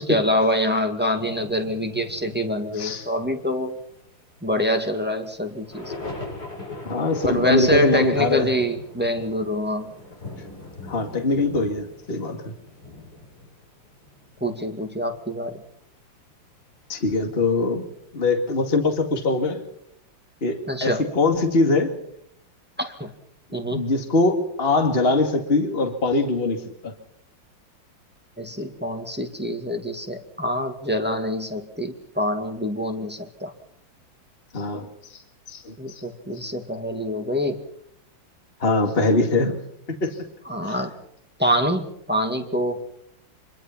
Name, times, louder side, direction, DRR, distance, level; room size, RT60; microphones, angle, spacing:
voice 1, 0.0-3.8 4.4-5.9 7.2-9.9 14.4-15.6 20.7-21.1 22.8-23.1 23.5-23.9 28.4-33.5 35.8-37.6 40.5-40.9 41.4-42.8, equal, 5° right, 4 dB, 2.0 m, -25 dB
sound 1, 1.2-14.7 15.0-15.4 16.2-16.4, left 2 dB, 50° left, 7.7 m, -40 dB
voice 2, 2.8-3.1 6.8-8.5 10.9-12.4 16.9-17.9 18.1-19.6 20.4-21.9 23.7-26.9 34.5-34.9 35.1-35.2 35.5-35.7 38.6-39.6 39.9-40.2 40.6-40.7, left 2 dB, 30° left, 4 dB, 2.4 m, -22 dB
25.0 x 22.5 x 5.9 m, 0.71 s
omnidirectional pair, 2.1 m